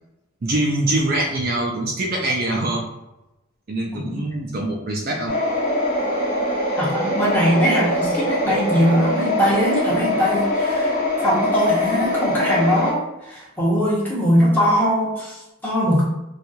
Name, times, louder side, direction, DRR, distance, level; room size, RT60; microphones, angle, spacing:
voice 1, 0.4-2.9 3.7-5.4, right 1 dB, 45° right, 0 dB, 0.4 m, -23 dB
sound 1, 5.3-12.9, left 1 dB, 35° left, 1.0 m, -23 dB
voice 2, 6.7-10.9 11.2-16.0, equal, 10° left, -7 dB, 1.0 m, -21 dB
4.3 x 2.3 x 2.7 m, 0.96 s
head